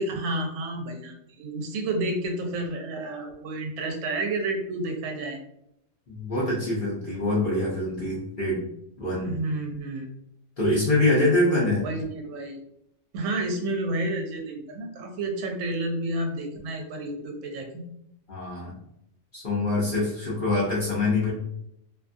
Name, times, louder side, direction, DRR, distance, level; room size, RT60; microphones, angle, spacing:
voice 1, 0.0-5.4 9.2-10.1 11.8-12.6 13.1-17.8, right 2 dB, 75° right, 3 dB, 1.0 m, -30 dB
voice 2, 6.1-8.6 9.0-9.3 10.6-11.9 18.3-18.8 19.3-21.3, left 2 dB, 50° left, -6 dB, 0.8 m, -24 dB
2.6 x 2.3 x 2.5 m, 0.75 s
omnidirectional pair, 1.4 m